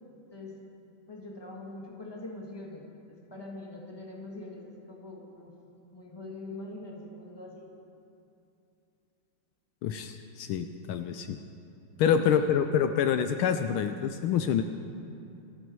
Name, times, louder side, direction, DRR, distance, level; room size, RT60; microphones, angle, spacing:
voice 1, 1.1-5.5 5.9-7.7 12.0-12.6, left 2 dB, 10° left, -2 dB, 1.8 m, -43 dB
voice 2, 9.8-11.4 12.0-14.6, left 8 dB, 75° left, 8 dB, 1.4 m, -27 dB
26.0 x 9.4 x 4.7 m, 2.7 s
omnidirectional pair, 2.4 m